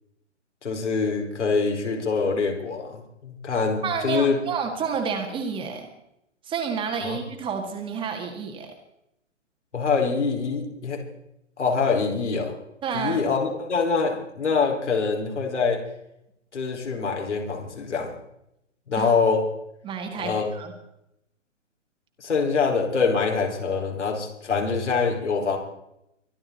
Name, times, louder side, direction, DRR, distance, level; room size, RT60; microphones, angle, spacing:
voice 1, 0.6-4.4 7.0-7.2 9.7-11.0 11.6-12.5 12.9-15.8 16.5-18.1 18.9-19.4 20.2-20.6 22.2-25.6, left 5 dB, 65° left, 2 dB, 4.7 m, -24 dB
voice 2, 3.8-5.9 6.4-8.7 12.8-13.2 19.0-19.1 19.8-20.7, right 6 dB, 15° right, 3 dB, 1.7 m, -29 dB
24.0 x 11.5 x 4.1 m, 0.79 s
figure-of-eight pair, 125°, 38 cm